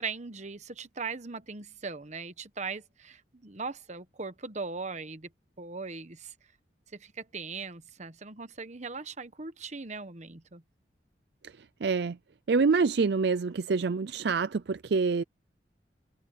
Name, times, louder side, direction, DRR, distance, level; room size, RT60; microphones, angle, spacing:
voice 1, 0.0-5.3 5.6-6.3 6.9-10.6, right 4 dB, 40° right, 1.2 m, -39 dB
voice 2, 11.8-12.2 12.5-15.2, right 4 dB, 65° right, 0.5 m, -26 dB
head